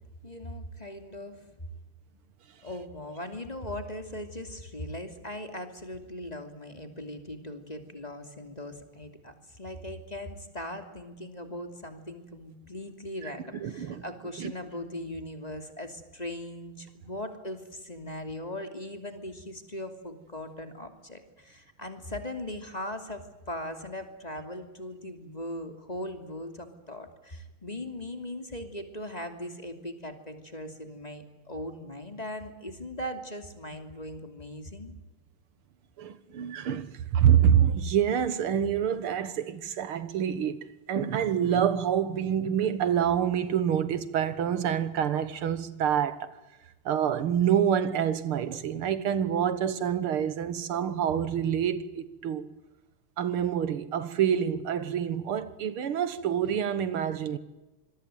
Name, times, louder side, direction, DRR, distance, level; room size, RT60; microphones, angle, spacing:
voice 1, 0.2-1.5 2.6-34.9, left 1 dB, 20° left, 2.8 m, -39 dB
voice 2, 13.6-14.0 14.4-14.5 36.0-46.3 46.9-52.4 53.2-57.4, right 9 dB, 85° right, 2.3 m, -27 dB
26.5 x 22.0 x 9.1 m
omnidirectional pair, 2.3 m